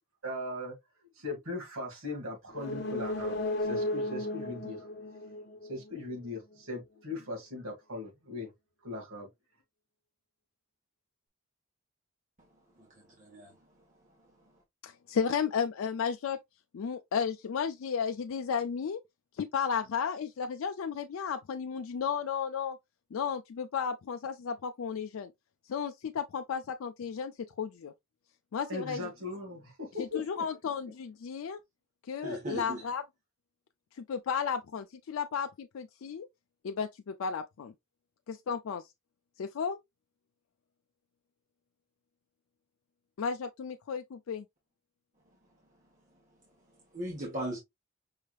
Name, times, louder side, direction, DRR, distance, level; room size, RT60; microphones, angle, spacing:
voice 1, 0.2-0.8 1.2-4.9 5.7-8.5 8.8-9.3 28.7-30.3, left 2 dB, 85° right, 2.2 m, -39 dB
sound 1, 2.5-6.2 6.5-6.6, left 1 dB, 55° left, 0.8 m, -35 dB
voice 2, 12.8-13.7 32.2-32.8 46.9-47.6, right 1 dB, 35° right, 1.3 m, -38 dB
voice 3, 14.8-16.4 16.7-19.0 19.3-22.8 23.1-25.3 25.7-27.9 28.5-29.1 30.0-31.6 32.0-33.0 33.9-36.3 36.6-37.7 38.3-38.9 39.4-39.8 43.2-44.5, left 6 dB, 80° left, 0.4 m, -33 dB
5.5 x 3.3 x 2.4 m
head